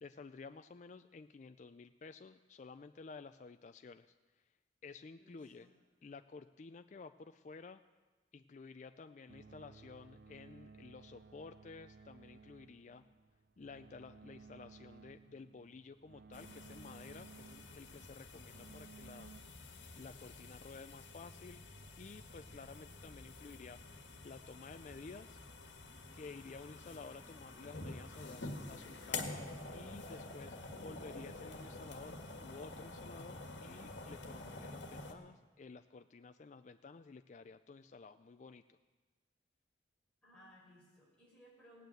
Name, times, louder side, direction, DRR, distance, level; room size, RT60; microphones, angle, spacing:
voice 1, 0.0-4.1 4.8-5.7 6.0-7.8 8.3-13.0 13.6-19.3 19.9-21.6 22.0-23.8 24.2-25.4 26.1-38.8, left 4 dB, 40° left, 9 dB, 0.4 m, -53 dB
voice 2, 5.2-5.7 8.9-9.8 40.2-41.9, left 1 dB, 5° left, -6 dB, 4.9 m, -63 dB
sound 1, 9.3-19.4, right 4 dB, 60° right, 0.5 m, -58 dB
sound 2, 16.3-35.1, left 2 dB, 85° left, 1.7 m, -48 dB
17.0 x 9.3 x 7.9 m, 1.3 s
head